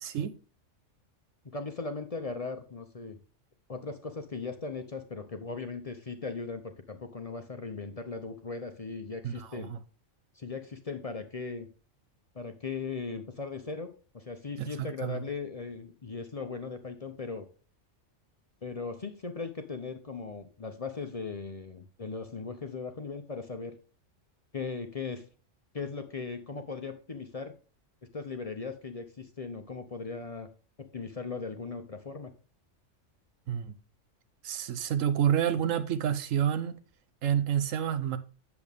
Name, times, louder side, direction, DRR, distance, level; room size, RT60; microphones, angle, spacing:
voice 1, 0.0-0.3 9.2-9.8 14.6-15.2 33.5-33.7 34.4-36.8 37.2-38.2, right 9 dB, 90° right, 1.1 m, -29 dB
voice 2, 1.5-3.2 3.7-9.7 10.3-11.7 12.3-17.5 18.6-23.8 24.5-25.2 25.7-27.5 28.1-30.5 30.9-32.3, left 4 dB, 35° left, 0.6 m, -38 dB
8.3 x 7.1 x 3.5 m
omnidirectional pair, 1.3 m